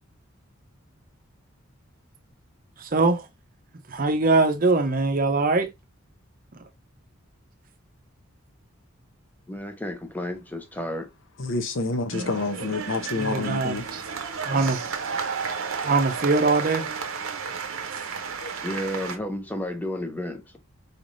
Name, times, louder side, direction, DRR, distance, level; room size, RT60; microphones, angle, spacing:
voice 1, 2.8-3.2 3.9-5.7 13.1-14.0 14.4-14.8 15.8-16.9, right 3 dB, 40° right, 0.6 m, -22 dB
voice 2, 9.5-11.1 18.6-20.6, left 1 dB, 10° left, 0.7 m, -32 dB
voice 3, 11.4-13.8 18.4-18.5, left 3 dB, 60° left, 0.7 m, -28 dB
sound 1, 12.1-19.2, right 5 dB, 75° right, 0.8 m, -32 dB
4.2 x 3.3 x 2.5 m
head